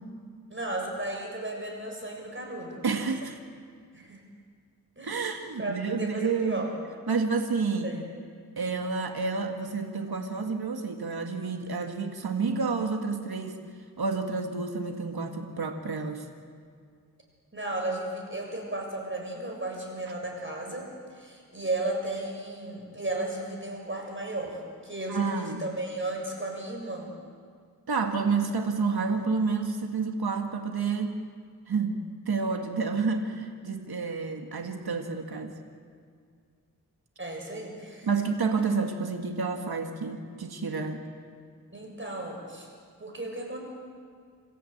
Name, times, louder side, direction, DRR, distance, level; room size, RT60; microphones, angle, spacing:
voice 1, 0.5-2.8 3.9-4.2 5.0-6.7 7.8-8.0 17.5-27.1 37.2-38.1 41.7-42.7 43.0-43.6, right 2 dB, 30° right, 1 dB, 6.7 m, -34 dB
voice 2, 2.8-3.4 5.0-6.7 7.1-8.0 8.6-13.6 14.0-16.3 25.1-25.6 27.9-31.2 31.7-32.0 32.3-35.6 38.1-41.0, right 4 dB, 80° right, 4 dB, 1.8 m, -29 dB
28.0 x 15.0 x 8.7 m, 2.1 s
wide cardioid pair, 55°, 37 cm